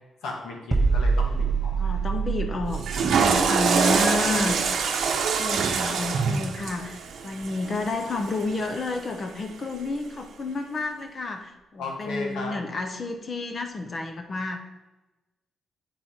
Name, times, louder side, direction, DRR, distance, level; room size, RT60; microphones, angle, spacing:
voice 1, 0.2-1.9 3.7-4.4 11.8-12.6, left 3 dB, 85° left, 1 dB, 1.6 m, -36 dB
sound 1, 0.7-6.4 6.7-6.9, right 4 dB, 20° right, 0.6 m, -27 dB
voice 2, 1.8-4.6 5.4-14.6, left 3 dB, 30° left, 6 dB, 0.7 m, -30 dB
Water / Toilet flush, 2.7-8.9, right 6 dB, 65° right, 0.8 m, -25 dB
8.4 x 5.1 x 4.4 m, 1.1 s
cardioid pair, 155°, 0 cm